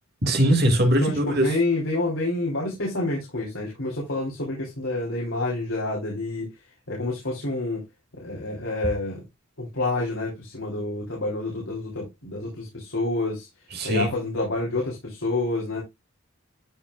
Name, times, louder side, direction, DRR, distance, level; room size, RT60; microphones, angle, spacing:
voice 1, 0.2-1.5 13.8-14.1, right 1 dB, 50° right, 2.5 m, -21 dB
voice 2, 1.0-6.5 6.9-7.8 8.2-9.2 9.6-13.5 13.8-15.8, left 2 dB, 70° left, 3.5 m, -28 dB
13.0 x 5.7 x 2.5 m
head